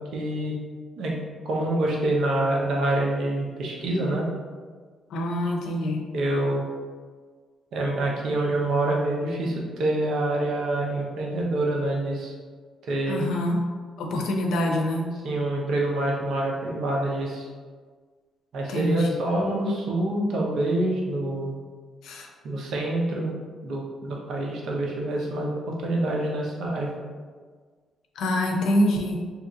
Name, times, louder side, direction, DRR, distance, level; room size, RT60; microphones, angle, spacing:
voice 1, 0.1-0.6 1.0-1.1 1.4-4.3 6.1-6.6 7.7-12.3 12.9-13.2 15.2-17.5 18.5-21.6 22.4-23.3 23.6-26.9, right 1 dB, 75° right, -2 dB, 0.7 m, -26 dB
voice 2, 5.1-6.1 13.1-13.7 14.0-15.1 18.7-19.2 22.0-22.3 28.2-29.2, equal, 80° left, 1 dB, 0.5 m, -25 dB
2.9 x 2.5 x 3.8 m, 1.5 s
cardioid pair, 90°, 0 cm